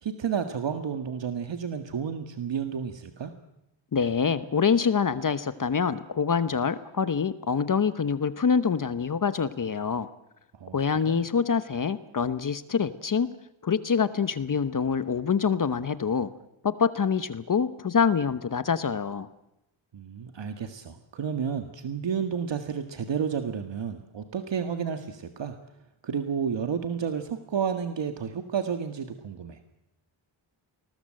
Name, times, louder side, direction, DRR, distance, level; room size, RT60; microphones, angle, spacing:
voice 1, 0.0-3.3 10.5-10.8 11.1-11.2 19.9-25.6 26.0-29.6, right 7 dB, 60° right, 7 dB, 1.9 m, -31 dB
voice 2, 3.9-10.1 10.7-13.3 13.6-16.3 16.6-19.3, left 6 dB, 40° left, 13 dB, 1.0 m, -25 dB
28.5 x 20.5 x 7.8 m, 0.89 s
wide cardioid pair, 140°, 48 cm